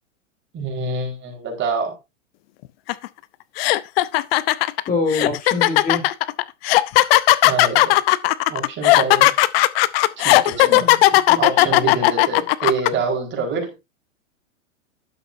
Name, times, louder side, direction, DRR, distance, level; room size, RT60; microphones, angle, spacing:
voice 1, 0.5-2.0 7.4-8.0 8.5-9.3 10.2-10.9 11.4-13.7, right 4 dB, 30° right, 4.6 m, -26 dB
sound 1, 2.9-3.1 3.6-12.9, left 17 dB, 50° left, 0.7 m, -15 dB
voice 2, 4.9-6.1 10.6-11.0 11.3-12.0, left 3 dB, 20° left, 3.2 m, -26 dB
12.0 x 8.6 x 2.7 m
hypercardioid pair, 115°, 39 cm